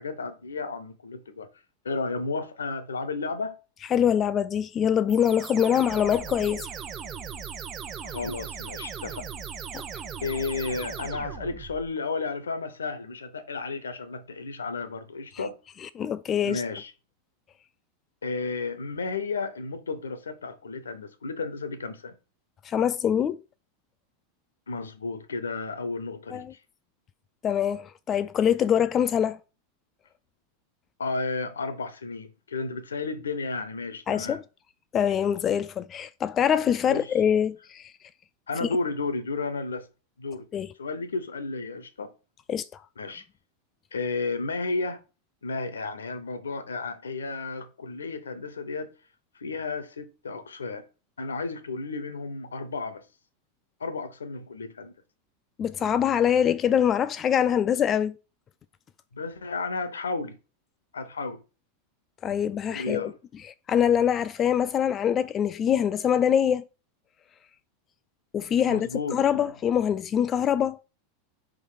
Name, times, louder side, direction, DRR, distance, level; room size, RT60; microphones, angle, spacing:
voice 1, 0.0-1.5 1.8-3.6 8.0-9.3 10.2-15.5 16.4-16.9 18.2-22.1 24.7-26.6 31.0-34.4 36.9-37.1 38.5-39.9 40.2-40.4 40.8-42.1 43.0-43.2 43.9-45.0 45.4-48.9 49.3-50.8 51.2-53.1 53.8-54.9 59.1-60.4 60.9-61.4 62.7-63.2 68.7-69.5, left 3 dB, 75° left, 0.8 m, -33 dB
voice 2, 3.9-6.7 9.7-9.8 15.8-16.6 22.6-23.4 26.3-26.5 27.4-29.4 34.1-34.4 34.9-37.9 38.6-38.7 40.5-40.7 42.5-42.8 55.6-58.2 62.2-63.1 63.4-66.6 68.3-70.8, left 9 dB, 30° left, 0.3 m, -24 dB
sound 1, 5.1-11.9, right 7 dB, 25° right, 0.9 m, -38 dB
5.1 x 3.8 x 4.9 m
figure-of-eight pair, 85°, 0 cm